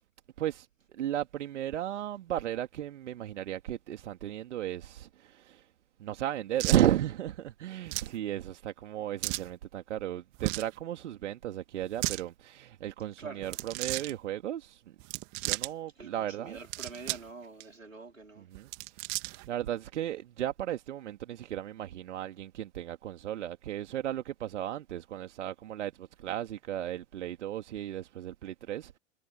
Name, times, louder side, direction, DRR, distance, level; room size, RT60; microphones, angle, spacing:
voice 1, 0.4-5.7 6.0-14.9 15.4-16.6 18.4-18.7 19.3-29.0, right 12 dB, 65° right, 2.3 m, -34 dB
sound 1, 6.6-6.9 7.9-8.1 9.2-9.5 10.3-10.7 11.8-12.2 13.4-14.1 15.0-15.7 16.5-17.3 17.6-17.7 18.5-19.5, right 35 dB, 45° right, 3.0 m, -35 dB
voice 2, 13.2-13.6 16.0-18.5, right 4 dB, 85° right, 4.2 m, -46 dB
figure-of-eight pair, 85°, 38 cm